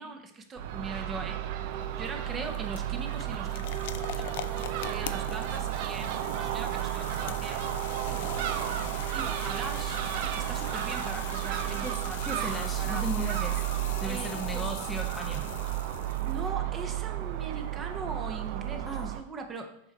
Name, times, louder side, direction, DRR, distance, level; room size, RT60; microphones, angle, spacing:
voice 1, 0.0-1.4 2.0-3.8 4.1-7.7 8.1-8.4 9.1-13.1 14.0-14.7 16.2-19.7, right 3 dB, 20° right, 5 dB, 1.0 m, -40 dB
Crow / Gull seagull, 0.6-19.2, right 12 dB, 50° right, 0.5 m, -32 dB
sound 1, 1.7-16.5, left 12 dB, 55° left, 0.4 m, -43 dB
voice 2, 12.2-13.6 14.0-15.4 18.9-19.1, equal, ahead, 1 dB, 0.7 m, -36 dB
7.0 x 4.7 x 4.2 m, 0.72 s
figure-of-eight pair, 90°, 0 cm